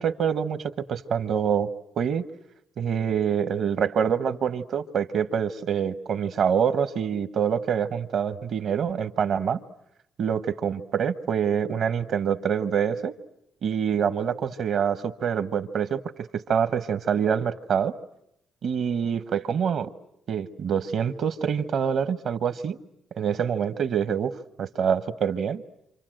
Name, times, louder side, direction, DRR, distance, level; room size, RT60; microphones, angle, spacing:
voice 1, 0.0-1.7 2.0-2.2 2.8-9.6 10.2-13.1 13.6-17.9 18.6-19.9 20.3-22.8 23.2-24.3 24.6-25.6, right 7 dB, 65° right, 12 dB, 1.2 m, -26 dB
28.0 x 27.0 x 7.8 m, 0.79 s
cardioid pair, 90°, 0 cm